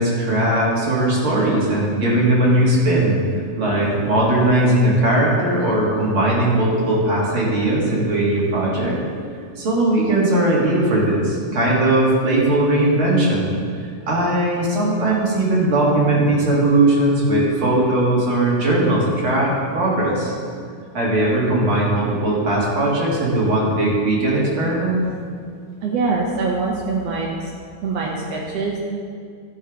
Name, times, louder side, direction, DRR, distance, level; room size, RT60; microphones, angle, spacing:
voice 1, 0.0-3.2 3.6-9.0 9.6-13.6 14.1-20.3 20.9-25.0, right 1 dB, 45° right, -5 dB, 2.3 m, -19 dB
voice 2, 25.8-27.3 27.8-28.8, right 4 dB, 80° right, -2 dB, 1.4 m, -23 dB
11.5 x 5.5 x 5.0 m, 2.2 s
omnidirectional pair, 3.9 m